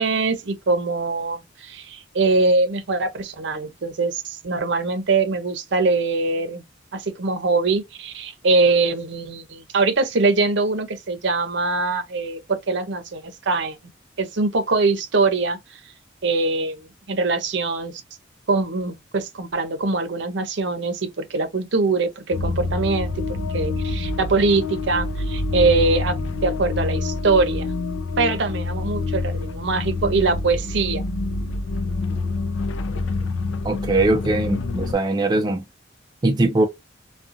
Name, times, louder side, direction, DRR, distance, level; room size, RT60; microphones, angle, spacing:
voice 1, 0.0-6.6 6.9-13.8 14.2-15.8 16.2-17.9 18.5-23.1 23.5-27.7 28.2-31.0, right 3 dB, 65° right, 0.6 m, -22 dB
sound 1, 22.3-34.9, left 3 dB, 75° left, 0.4 m, -27 dB
voice 2, 33.6-35.6 36.2-36.7, right 2 dB, 20° right, 0.3 m, -20 dB
2.5 x 2.3 x 2.5 m
head